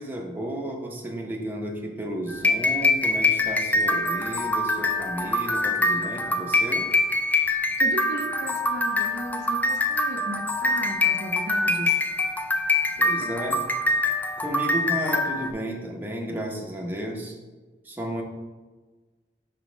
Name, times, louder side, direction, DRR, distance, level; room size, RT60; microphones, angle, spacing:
voice 1, 0.0-6.9 13.0-13.6 14.4-17.4 17.8-18.2, right 1 dB, 10° right, 0 dB, 0.8 m, -33 dB
sound 1, 2.3-15.5, left 2 dB, 10° left, 0.3 m, -24 dB
voice 2, 7.8-12.0, right 2 dB, 75° right, 5 dB, 0.5 m, -35 dB
5.2 x 4.1 x 5.1 m, 1.3 s
head